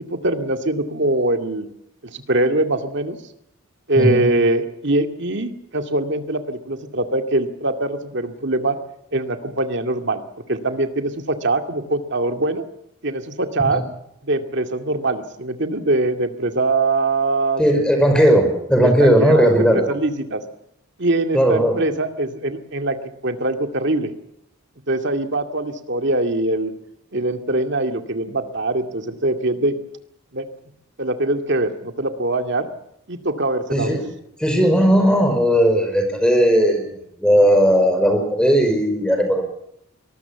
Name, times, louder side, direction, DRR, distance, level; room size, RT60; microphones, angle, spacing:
voice 1, 0.1-1.7 2.0-3.2 3.9-8.8 9.1-10.2 10.5-12.6 13.0-13.8 14.2-17.6 18.8-20.4 21.0-24.1 24.9-26.7 27.1-29.7 30.3-30.4 31.0-32.7 33.1-34.0, right 2 dB, 55° right, 6 dB, 2.3 m, -22 dB
voice 2, 17.6-19.9 21.3-21.8 33.7-34.0 34.4-36.8 37.2-39.4, equal, 5° left, 5 dB, 5.3 m, -16 dB
23.5 x 20.0 x 7.2 m, 0.79 s
head